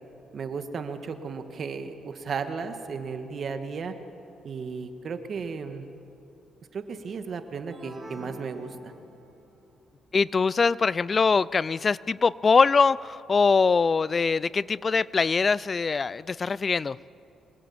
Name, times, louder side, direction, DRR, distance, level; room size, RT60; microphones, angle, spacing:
voice 1, 0.3-3.9 4.4-5.8 6.7-8.9, right 5 dB, 50° right, 7 dB, 2.0 m, -34 dB
sound 1, 7.7-9.5, equal, 25° right, 7.4 m, -45 dB
voice 2, 10.1-17.0, left 4 dB, 35° left, 21 dB, 0.5 m, -23 dB
25.5 x 19.5 x 8.9 m, 2.7 s
cardioid pair, 90°, 0 cm